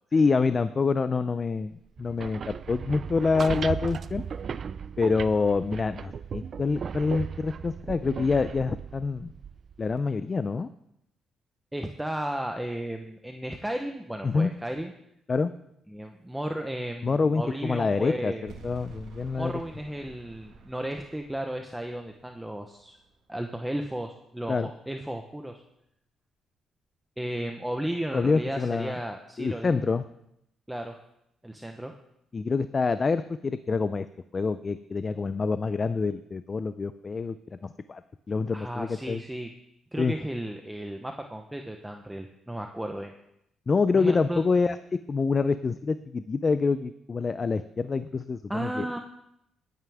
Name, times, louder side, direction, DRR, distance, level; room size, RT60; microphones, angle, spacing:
voice 1, 0.1-4.2 5.0-9.3 9.8-10.7 14.2-14.5 15.3-15.5 17.0-19.5 24.5-24.7 28.1-29.0 29.4-30.0 32.3-34.1 34.3-38.0 38.3-39.2 40.0-40.1 43.7-44.8 45.1-48.9, left 4 dB, 35° left, 12 dB, 0.5 m, -26 dB
sound 1, 2.0-10.0, right 7 dB, 50° right, 0.4 m, -36 dB
voice 2, 11.7-14.9 15.9-18.5 19.4-23.0 23.3-25.6 27.2-29.8 30.7-31.0 31.4-31.9 38.5-39.5 39.9-43.1 44.0-44.4 48.5-49.0, right 1 dB, 5° right, 4 dB, 0.9 m, -34 dB
sound 2, 18.5-23.6, right 4 dB, 65° right, 1.7 m, -50 dB
20.0 x 9.4 x 3.5 m, 0.79 s
cardioid pair, 90°, 0 cm